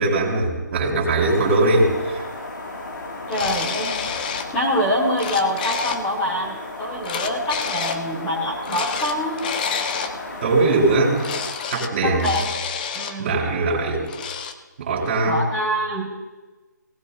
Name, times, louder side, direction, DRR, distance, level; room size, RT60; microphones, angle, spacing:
voice 1, 0.0-2.2 10.4-11.2 11.7-12.3 13.2-14.1 14.8-15.4, right 2 dB, 40° right, -2 dB, 3.9 m, -20 dB
sound 1, 1.2-11.5, left 2 dB, 80° left, 2.4 m, -34 dB
sound 2, 3.3-4.5 4.9-6.0 7.0-8.0 8.6-10.2 11.2-11.9 12.2-13.1 14.1-14.5, left 7 dB, 25° left, 0.7 m, -28 dB
voice 2, 3.3-4.2 4.5-9.4 12.0-12.5 12.9-13.3 15.2-16.1, equal, 10° left, -6 dB, 2.7 m, -25 dB
18.0 x 16.5 x 2.7 m, 1.2 s
figure-of-eight pair, 155°, 10 cm